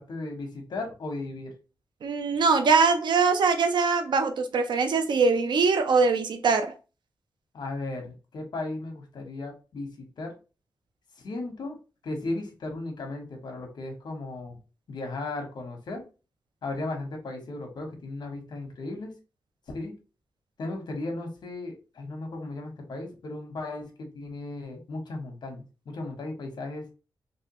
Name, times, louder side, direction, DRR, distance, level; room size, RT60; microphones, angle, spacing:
voice 1, 0.0-1.5 7.5-10.3 11.2-11.8 12.0-14.6 14.9-16.0 16.6-19.1 19.7-19.9 20.6-26.9, left 2 dB, 70° left, 1.2 m, -36 dB
voice 2, 2.0-6.7, right 4 dB, 85° right, 0.6 m, -22 dB
3.3 x 3.3 x 3.0 m
wide cardioid pair, 170°, 8 cm